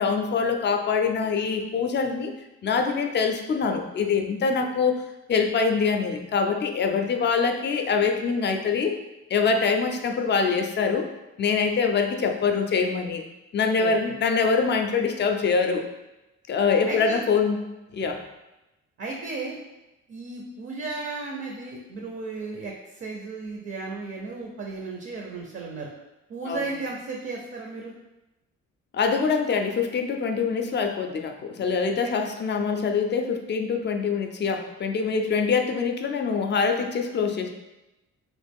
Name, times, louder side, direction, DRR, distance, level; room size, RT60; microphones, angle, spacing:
voice 1, 0.0-2.3 2.6-9.0 9.3-11.1 11.4-13.2 13.5-15.9 16.5-17.7 17.9-18.2 26.5-26.6 28.9-37.5, left 5 dB, 35° left, 5 dB, 0.4 m, -24 dB
voice 2, 16.9-17.2 19.0-19.6 20.1-25.9 26.3-27.9 32.0-32.1, right 3 dB, 40° right, 0 dB, 0.5 m, -34 dB
3.0 x 2.4 x 3.5 m, 1.0 s
cardioid pair, 90°, 30 cm